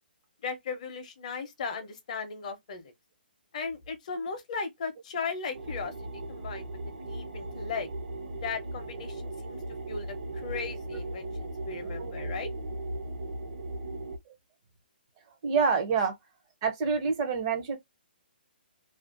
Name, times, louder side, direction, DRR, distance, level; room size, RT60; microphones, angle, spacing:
voice 1, 0.4-2.9 3.5-5.9 6.3-7.9 8.4-9.6 9.9-10.1 10.3-12.5 16.0-16.1, left 5 dB, 45° left, 0.6 m, -37 dB
sound 1, 5.5-14.2, right 2 dB, 70° right, 0.7 m, -37 dB
voice 2, 11.8-12.2 14.3-14.4 15.4-16.1 16.6-17.8, right 5 dB, 25° right, 0.5 m, -27 dB
2.4 x 2.1 x 2.4 m
hypercardioid pair, 165°, 6 cm